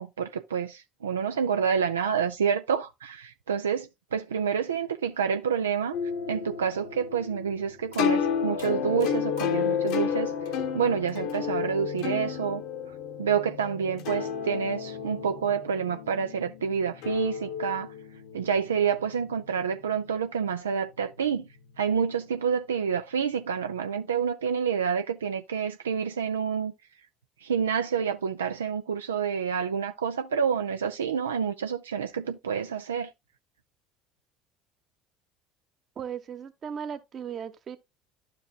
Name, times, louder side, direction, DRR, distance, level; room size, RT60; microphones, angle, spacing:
voice 1, 0.0-6.0 6.3-10.3 10.7-12.6 13.2-17.9 18.3-21.5 21.8-26.7 27.4-33.1, right 7 dB, 90° right, 0.4 m, -28 dB
sound 1, 5.9-20.0, left 7 dB, 65° left, 1.0 m, -31 dB
voice 2, 36.0-37.8, right 8 dB, 45° right, 1.1 m, -37 dB
12.0 x 4.8 x 2.3 m
hypercardioid pair, 70°, 0 cm